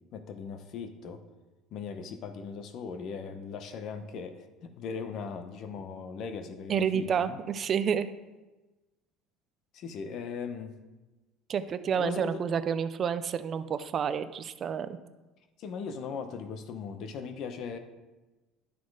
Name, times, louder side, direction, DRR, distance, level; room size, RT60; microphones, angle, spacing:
voice 1, 0.1-1.2 1.7-7.4 8.0-8.1 9.7-10.8 11.9-12.4 15.6-17.8, left 5 dB, 45° left, 9 dB, 0.7 m, -39 dB
voice 2, 6.7-8.1 11.5-14.9, right 7 dB, 30° right, 12 dB, 0.4 m, -29 dB
11.0 x 4.2 x 4.7 m, 1.1 s
cardioid pair, 165°, 0 cm